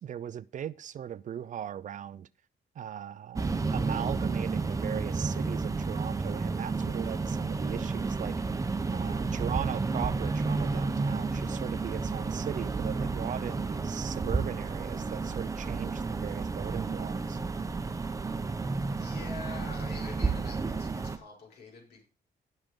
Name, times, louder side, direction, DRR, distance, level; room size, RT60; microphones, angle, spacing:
voice 1, 0.0-2.3 2.8-8.4 8.9-17.4, right 9 dB, 50° right, 0.5 m, -38 dB
sound 1, 3.4-21.2, right 4 dB, 20° right, 0.8 m, -31 dB
voice 2, 18.9-22.0, left 3 dB, 75° left, 5.4 m, -45 dB
17.5 x 6.6 x 3.8 m
cardioid pair, 130°, 17 cm